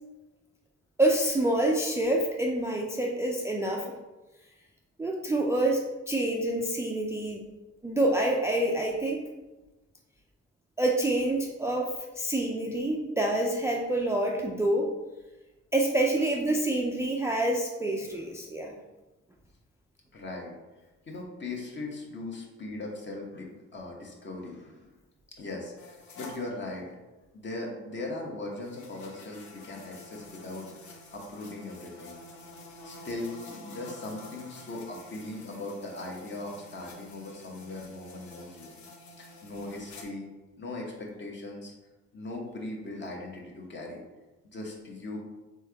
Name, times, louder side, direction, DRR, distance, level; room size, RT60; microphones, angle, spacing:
voice 1, 1.0-3.9 5.0-7.4 7.8-9.2 10.8-14.9 15.7-18.8, right 1 dB, 10° right, -1 dB, 0.4 m, -27 dB
voice 2, 20.1-20.5 21.1-24.9 25.4-26.9 27.3-32.2 32.8-38.7 39.2-40.3 40.6-41.7 42.1-44.0 44.4-45.2, left 2 dB, 35° left, 0 dB, 1.1 m, -39 dB
sound 1, 25.8-26.4 28.6-40.0, left 2 dB, 70° left, 0.8 m, -48 dB
3.7 x 3.4 x 3.3 m, 1.1 s
cardioid pair, 90°, 30 cm